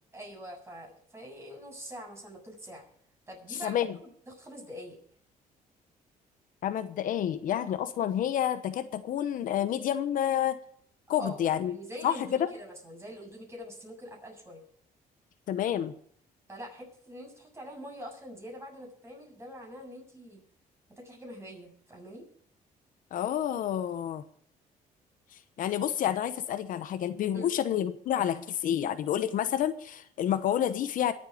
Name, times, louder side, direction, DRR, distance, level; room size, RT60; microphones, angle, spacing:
voice 1, 0.1-2.8 3.3-5.0 11.2-14.6 16.5-20.4 20.9-22.3 27.3-27.5, equal, 20° right, 1 dB, 7.5 m, -44 dB
voice 2, 3.5-3.9 6.6-10.6 11.1-11.7 12.0-12.5 15.5-15.9 23.1-24.2 25.6-31.1, left 10 dB, 65° left, 11 dB, 1.0 m, -29 dB
22.5 x 8.3 x 5.0 m, 0.63 s
cardioid pair, 110°, 15 cm